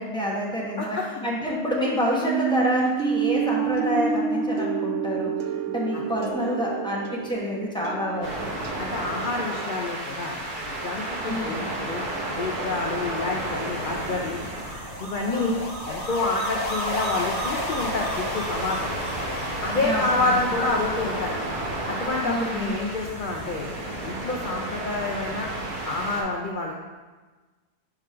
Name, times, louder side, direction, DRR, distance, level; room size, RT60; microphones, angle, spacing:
voice 1, 0.0-5.3 5.7-8.5 11.3-11.7 15.3-15.5 19.8-20.4 22.2-22.8, left 1 dB, 5° left, -5 dB, 0.7 m, -28 dB
sound 1, 2.2-9.5, right 7 dB, 65° right, 0.8 m, -29 dB
sound 2, 8.2-26.2, right 1 dB, 85° right, 1.6 m, -32 dB
voice 2, 8.8-10.4 10.8-12.0 12.4-14.4 15.0-19.0 19.6-21.3 21.9-23.7 24.0-25.5 25.8-26.8, left 3 dB, 85° left, -1 dB, 0.4 m, -28 dB
sound 3, 13.8-23.1, equal, 45° left, 1.3 m, -34 dB
4.9 x 3.6 x 5.6 m, 1.3 s
omnidirectional pair, 1.6 m